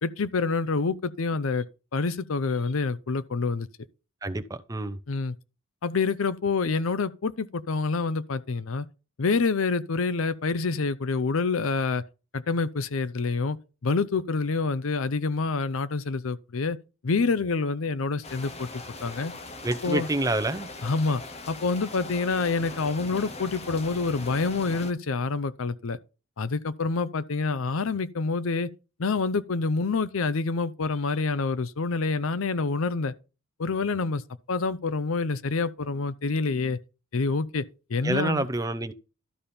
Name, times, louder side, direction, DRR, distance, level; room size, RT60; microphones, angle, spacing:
voice 1, 0.0-1.7 1.9-3.7 5.1-5.3 5.8-8.9 9.2-12.0 12.3-13.6 13.8-16.8 17.0-18.7 19.0-19.3 19.8-20.1 20.8-21.2 21.5-26.0 26.4-28.7 29.0-33.1 33.6-34.2 34.5-36.8 37.1-37.6 37.9-38.5, left 4 dB, 70° left, 0.6 m, -27 dB
voice 2, 4.2-5.0 19.6-20.7 38.0-38.9, right 2 dB, 15° right, 0.6 m, -28 dB
sound 1, 18.2-24.9, left 2 dB, 30° left, 0.8 m, -40 dB
12.5 x 4.3 x 5.1 m
head